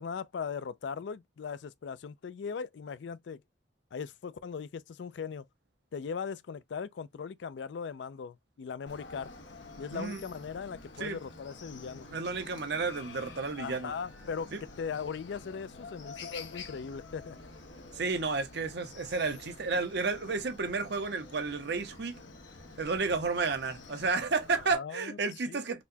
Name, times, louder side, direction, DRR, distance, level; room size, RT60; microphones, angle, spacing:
voice 1, 0.0-3.4 3.9-5.5 5.9-9.3 9.8-12.1 13.6-14.5 14.8-17.4 24.7-25.2 25.5-25.6, left 6 dB, 70° left, 0.4 m, -39 dB
Chicken rooster, 8.9-24.7, left 3 dB, 90° left, 1.0 m, -48 dB
voice 2, 9.9-10.2 11.0-11.2 12.1-13.9 14.5-14.6 17.9-22.2 22.8-25.8, right 4 dB, 65° right, 0.7 m, -32 dB
4.1 x 2.2 x 2.6 m
head